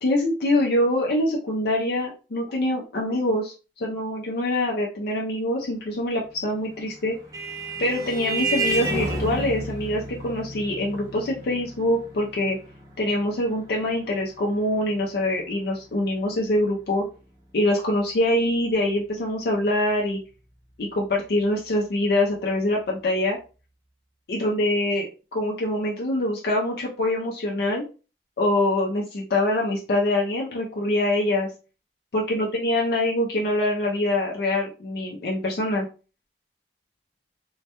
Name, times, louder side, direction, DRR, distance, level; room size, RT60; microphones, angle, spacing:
voice 1, 0.0-7.2 7.8-12.6 13.0-17.1 17.5-20.2 20.8-23.4 24.3-27.8 28.4-31.5 32.1-35.9, left 1 dB, 60° left, -1 dB, 0.4 m, -24 dB
Vehicle horn car horn honking, 6.7-15.7, right 2 dB, 20° right, 0.4 m, -32 dB
2.2 x 2.1 x 2.8 m, 0.34 s
head